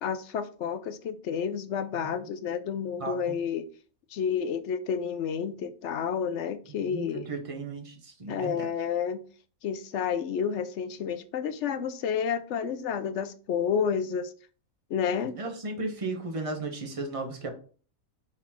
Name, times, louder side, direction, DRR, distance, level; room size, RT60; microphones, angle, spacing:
voice 1, 0.0-3.7 4.1-7.3 8.3-9.2 9.6-14.3 14.9-15.3, left 7 dB, 65° left, 0.9 m, -30 dB
voice 2, 6.9-8.7 15.4-17.5, right 3 dB, 25° right, 1.1 m, -35 dB
6.1 x 4.1 x 4.3 m
omnidirectional pair, 1.5 m